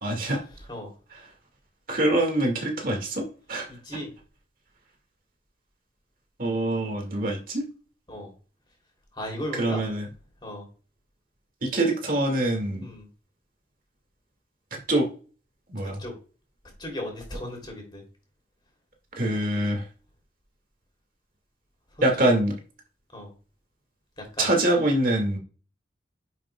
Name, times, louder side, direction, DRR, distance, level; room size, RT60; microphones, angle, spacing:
voice 1, 0.0-0.4 1.1-1.2 1.9-3.7 6.4-7.7 9.6-10.1 11.6-12.9 14.7-15.1 15.7-16.0 19.2-19.8 22.0-22.5 24.4-25.4, right 1 dB, 50° right, 2 dB, 1.8 m, -24 dB
voice 2, 9.1-9.8 10.4-10.6 12.8-13.1 15.8-16.1 16.8-18.0 23.1-23.3 24.2-24.5, left 1 dB, 25° left, 1 dB, 2.9 m, -36 dB
10.5 x 5.8 x 2.3 m, 0.36 s
head